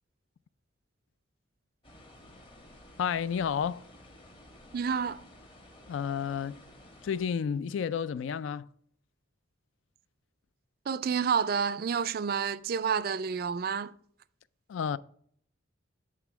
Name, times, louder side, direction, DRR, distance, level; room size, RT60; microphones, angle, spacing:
sound 1, 1.8-7.3, left 1 dB, 25° left, 1.1 m, -53 dB
voice 1, 3.0-3.8 5.9-6.6 7.0-8.7 14.7-15.0, left 7 dB, 80° left, 0.3 m, -31 dB
voice 2, 4.7-5.2 10.9-13.9, right 6 dB, 50° right, 0.3 m, -29 dB
8.2 x 3.6 x 5.8 m
head